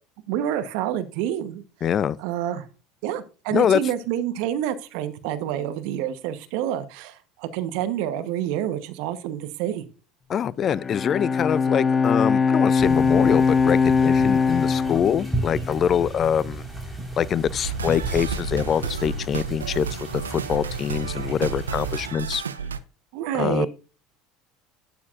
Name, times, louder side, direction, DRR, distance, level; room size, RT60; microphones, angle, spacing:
voice 1, 0.3-1.6 2.2-2.7 3.0-9.8 23.1-23.7, right 11 dB, 65° right, 1.1 m, -28 dB
voice 2, 1.8-2.2 3.5-3.8 10.3-16.7 17.2-22.4 23.3-23.7, left 8 dB, 40° left, 0.4 m, -24 dB
Bowed string instrument, 10.7-16.1, left 5 dB, 25° left, 0.9 m, -21 dB
sound 1, 12.8-22.1, right 2 dB, 5° right, 4.5 m, -34 dB
sound 2, 17.6-22.8, right 6 dB, 90° right, 0.5 m, -32 dB
11.5 x 8.5 x 2.5 m
hypercardioid pair, 70°, 0 cm